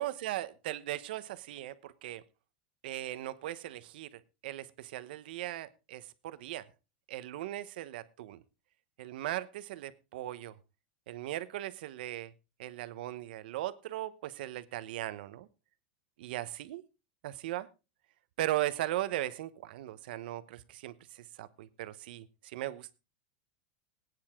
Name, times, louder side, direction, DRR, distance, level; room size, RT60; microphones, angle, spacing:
voice 1, 0.0-2.2 2.8-6.6 7.1-8.4 9.0-10.6 11.1-12.3 12.6-15.5 16.2-16.8 17.2-17.7 18.4-22.9, right 14 dB, 70° right, 14 dB, 1.1 m, -38 dB
19.5 x 9.7 x 3.7 m, 0.30 s
supercardioid pair, 170°, 5 cm